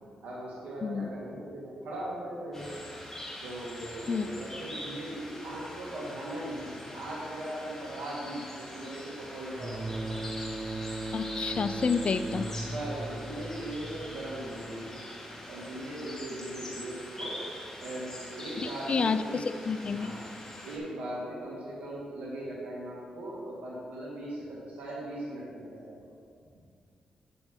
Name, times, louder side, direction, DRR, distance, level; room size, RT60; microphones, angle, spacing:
voice 1, 0.2-2.9 3.4-9.9 12.6-15.1 15.5-17.4 17.8-19.4 19.9-20.3 20.6-25.9, right 1 dB, 80° right, -5 dB, 1.9 m, -39 dB
sound 1, 2.5-20.8, left 1 dB, 15° left, 2.3 m, -44 dB
sound 2, 9.6-15.0, right 2 dB, 20° right, 0.8 m, -38 dB
voice 2, 11.1-12.5 18.6-20.1, left 5 dB, 50° left, 12 dB, 0.4 m, -29 dB
9.1 x 6.9 x 3.7 m, 2.2 s
cardioid pair, 60°, 3 cm